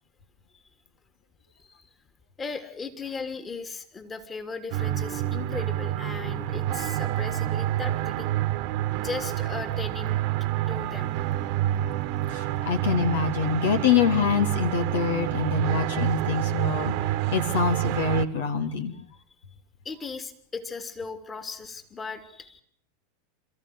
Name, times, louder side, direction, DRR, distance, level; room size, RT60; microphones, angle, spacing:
voice 1, 1.5-1.9 2.4-8.3 8.9-10.2 10.7-11.2 19.8-22.6, left 4 dB, 20° left, 9 dB, 3.1 m, -37 dB
sound 1, 4.7-18.3, right 13 dB, 55° right, 1.5 m, -28 dB
voice 2, 12.3-18.9, left 6 dB, 70° left, 7 dB, 3.1 m, -25 dB
29.5 x 14.5 x 9.5 m, 0.66 s
hypercardioid pair, 90°, 0 cm